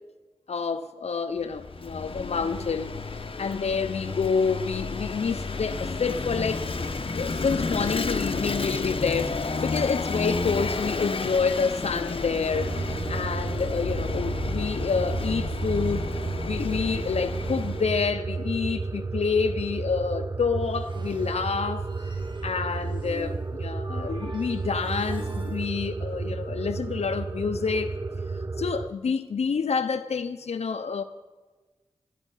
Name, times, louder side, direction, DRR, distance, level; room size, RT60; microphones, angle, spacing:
voice 1, 0.5-2.9 3.4-6.7 7.1-21.9 22.4-28.0 28.6-31.0, left 5 dB, 80° left, 0.6 m, -28 dB
Vehicle / Engine, 1.4-18.1, left 3 dB, 60° left, 0.9 m, -31 dB
sound 1, 12.5-28.9, right 3 dB, 30° right, 0.4 m, -32 dB
sound 2, 20.6-25.7, right 1 dB, 50° right, 1.6 m, -45 dB
12.0 x 8.9 x 9.8 m
cardioid pair, 50°, 11 cm